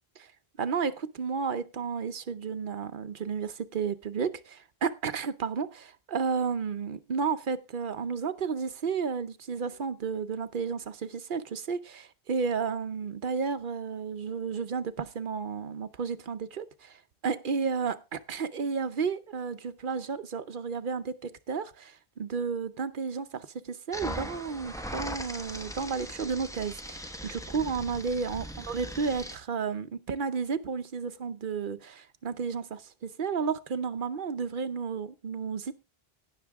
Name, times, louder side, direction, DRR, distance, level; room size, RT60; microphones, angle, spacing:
voice 1, 0.6-35.7, right 5 dB, 60° right, 0.9 m, -32 dB
sound 1, 23.9-29.3, equal, 5° left, 1.0 m, -39 dB
17.0 x 6.1 x 3.5 m
omnidirectional pair, 1.0 m